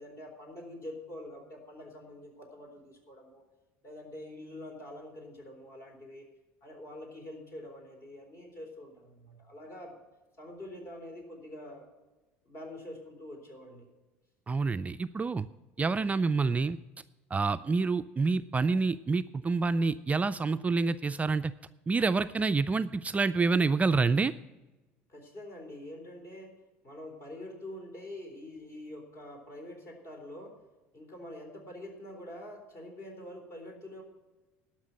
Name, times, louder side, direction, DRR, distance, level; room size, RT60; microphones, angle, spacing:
voice 1, 0.0-3.4 3.8-6.3 6.6-10.0 10.4-11.9 12.5-13.9 25.1-26.5 26.8-30.5 30.9-34.0, left 1 dB, 45° left, 2 dB, 3.8 m, -45 dB
voice 2, 14.5-15.5 15.8-16.8 17.3-21.5 21.9-24.3, right 4 dB, 25° right, 11 dB, 0.3 m, -27 dB
12.0 x 5.9 x 8.7 m, 1.1 s
hypercardioid pair, 80°, 6 cm